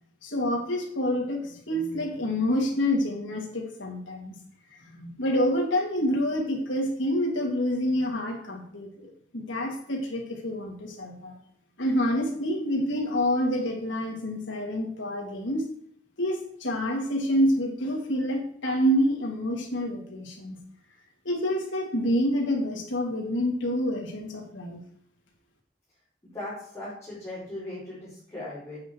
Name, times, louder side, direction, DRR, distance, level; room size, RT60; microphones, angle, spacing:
voice 1, 0.2-4.4 4.8-11.3 11.8-15.6 16.2-20.6 21.2-24.8, equal, 90° left, 0 dB, 2.8 m, -27 dB
voice 2, 26.3-28.8, left 1 dB, 15° left, -12 dB, 4.9 m, -38 dB
9.4 x 8.5 x 4.8 m, 0.67 s
head